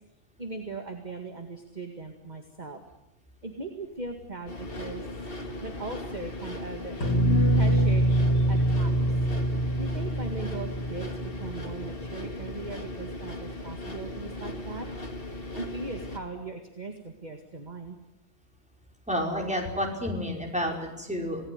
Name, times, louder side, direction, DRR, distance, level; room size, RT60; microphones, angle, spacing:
voice 1, 0.4-2.8 3.4-5.0 5.6-7.0 7.5-8.1 8.5-9.0 9.8-11.1 11.4-14.9 15.5-18.0, right 3 dB, 30° right, 5 dB, 2.1 m, -39 dB
sound 1, 3.8-14.3 14.6-14.7, left 3 dB, 55° left, 1.9 m, -41 dB
sound 2, 4.5-16.2, left 1 dB, 40° left, 2.7 m, -38 dB
sound 3, 7.0-11.9, right 1 dB, 80° left, 4.1 m, -25 dB
voice 2, 19.1-21.5, equal, 5° right, 0 dB, 5.4 m, -30 dB
27.0 x 18.5 x 9.7 m, 0.87 s
omnidirectional pair, 1.4 m